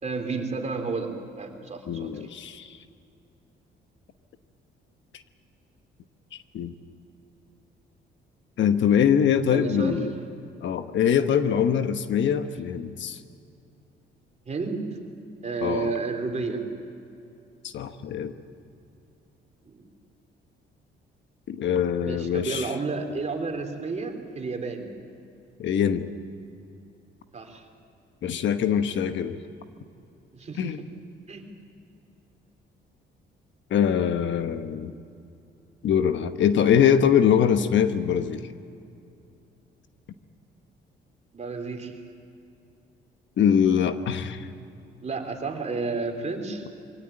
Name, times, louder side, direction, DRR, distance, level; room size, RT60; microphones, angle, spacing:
voice 1, 0.0-2.2 9.5-10.0 14.5-14.9 15.4-16.7 19.6-19.9 22.0-24.9 27.3-27.6 30.3-30.9 31.3-31.5 41.3-42.0 45.0-46.6, right 4 dB, 35° right, 3 dB, 3.4 m, -31 dB
voice 2, 1.9-2.8 6.5-6.7 8.6-10.1 10.6-13.2 15.6-15.9 17.6-18.3 21.5-22.7 25.6-26.1 28.2-29.4 30.6-30.8 33.7-34.9 35.8-38.4 43.4-44.5, left 8 dB, 70° left, 9 dB, 1.2 m, -23 dB
23.5 x 17.0 x 9.0 m, 2.6 s
cardioid pair, 90°, 20 cm